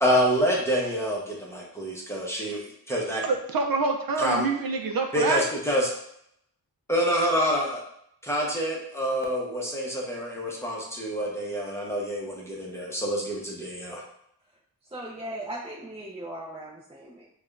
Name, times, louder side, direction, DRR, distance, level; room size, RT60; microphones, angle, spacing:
voice 1, 0.0-2.6 2.9-3.2 4.2-4.4 5.1-5.9 6.9-7.8 8.2-14.0, equal, 5° left, -3 dB, 0.8 m, -27 dB
voice 2, 3.2-5.4, right 4 dB, 60° right, 3 dB, 0.5 m, -26 dB
voice 3, 14.9-17.3, right 1 dB, 15° right, -5 dB, 0.5 m, -38 dB
4.8 x 2.3 x 2.5 m, 0.73 s
wide cardioid pair, 95°, 39 cm